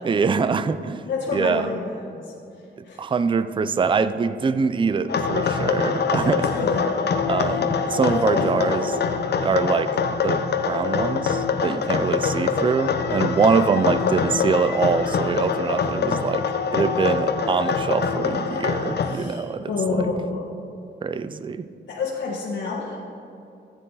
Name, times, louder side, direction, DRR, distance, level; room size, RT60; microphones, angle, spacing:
voice 1, 0.0-1.0 1.3-1.7 2.8-6.5 7.3-8.9 9.4-10.0 10.2-16.5 16.7-20.1 21.0-21.7, right 5 dB, 25° right, 13 dB, 0.4 m, -24 dB
voice 2, 1.0-2.3 2.8-3.0 6.2-6.9 8.0-8.7 9.5-9.7 14.0-14.2 19.0-20.5 21.9-23.0, left 4 dB, 85° left, -5 dB, 1.5 m, -29 dB
sound 1, 5.1-19.1, left 5 dB, 60° left, 0.7 m, -24 dB
15.0 x 8.9 x 4.0 m, 2.8 s
wide cardioid pair, 150°, 19 cm